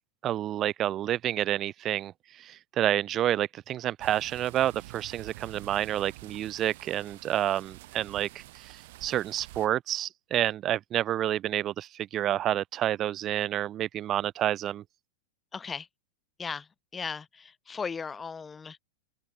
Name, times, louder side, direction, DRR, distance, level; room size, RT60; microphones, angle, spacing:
voice 1, 0.2-2.1 2.4-14.8, right 12 dB, 30° right, 0.7 m, -29 dB
sound 1, 4.0-9.7, right 19 dB, 50° right, 3.5 m, -48 dB
voice 2, 15.5-15.9 16.4-18.8, left 5 dB, 15° left, 2.0 m, -37 dB
open air
figure-of-eight pair, 90°, 0 cm